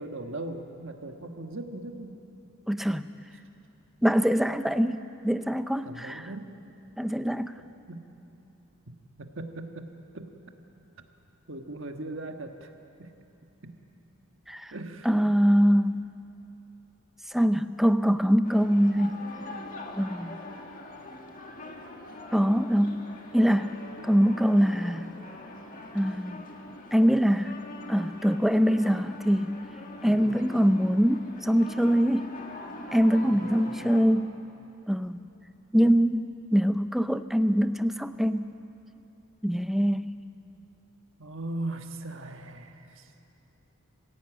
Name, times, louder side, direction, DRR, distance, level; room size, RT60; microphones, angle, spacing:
voice 1, 0.0-2.2 5.8-6.6 7.6-8.0 8.9-9.9 10.1-10.3 11.5-12.7 13.0-13.1 13.6-13.8 14.7-15.3 30.0-30.5 33.2-34.1 41.2-43.1, right 2 dB, 60° right, 5 dB, 1.5 m, -39 dB
voice 2, 2.7-3.1 4.0-6.2 7.0-7.5 14.5-14.7 15.1-16.0 17.3-19.2 20.0-20.4 22.3-23.0 23.3-23.7 24.0-25.0 25.9-26.4 26.9-27.5 27.9-29.6 30.0-32.3 32.9-34.4 34.9-35.2 35.7-38.5 39.4-40.1, equal, ahead, 10 dB, 0.5 m, -23 dB
sound 1, 18.4-34.1, left 2 dB, 40° left, 1.8 m, -43 dB
23.5 x 16.0 x 9.0 m, 2.9 s
head